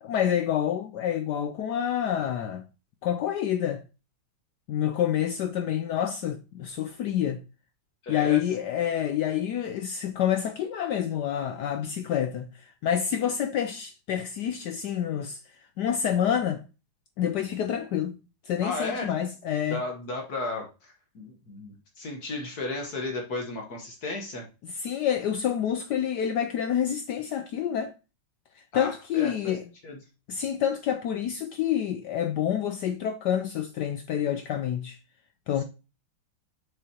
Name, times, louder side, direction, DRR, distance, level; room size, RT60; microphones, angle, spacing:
voice 1, 0.0-2.6 3.0-3.8 4.7-7.4 8.1-15.4 15.8-16.6 17.2-18.2 18.5-19.8 24.6-27.9 28.7-29.6 30.3-35.0 35.5-35.6, left 9 dB, 75° left, 1.0 m, -28 dB
voice 2, 8.0-8.4 18.6-19.1 19.7-24.4 28.7-29.5 29.8-30.0, left 2 dB, 50° left, 1.7 m, -34 dB
6.6 x 5.5 x 2.9 m
omnidirectional pair, 2.3 m